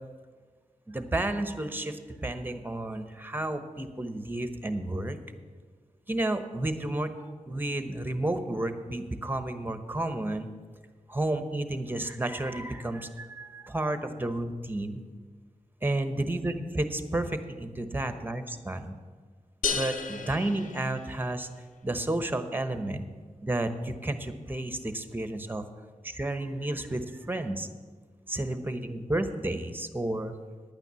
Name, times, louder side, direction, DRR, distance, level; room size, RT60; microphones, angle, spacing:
voice 1, 0.9-5.2 6.1-10.5 11.1-15.0 15.8-19.0 19.7-21.5 21.8-23.0 23.4-25.6 26.0-27.7 28.3-30.4, right 1 dB, 15° right, 9 dB, 1.0 m, -31 dB
sound 1, 19.6-21.5, left 5 dB, 85° left, 0.7 m, -33 dB
10.5 x 9.2 x 6.8 m, 1.5 s
wide cardioid pair, 80°, 13 cm